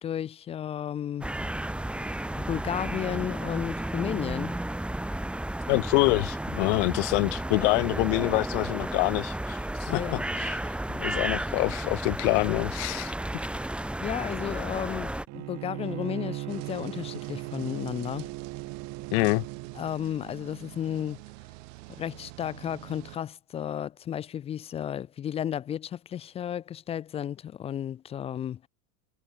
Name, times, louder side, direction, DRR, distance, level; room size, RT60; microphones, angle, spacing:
voice 1, 0.0-1.3 2.4-4.5 9.9-10.2 10.6-10.8 14.0-18.3 19.8-21.2 22.0-28.7, left 10 dB, 15° left, 0.4 m, -33 dB
sound 1, 1.2-15.3, right 1 dB, 5° right, 1.5 m, -33 dB
voice 2, 5.7-10.0 10.4-10.6 10.9-13.1 19.1-19.4, left 32 dB, 55° left, 1.0 m, -26 dB
Bowed string instrument, 15.3-19.8, right 20 dB, 40° right, 1.1 m, -38 dB
sound 2, 16.5-23.2, right 24 dB, 65° right, 4.9 m, -45 dB
supercardioid pair, 145°, 42 cm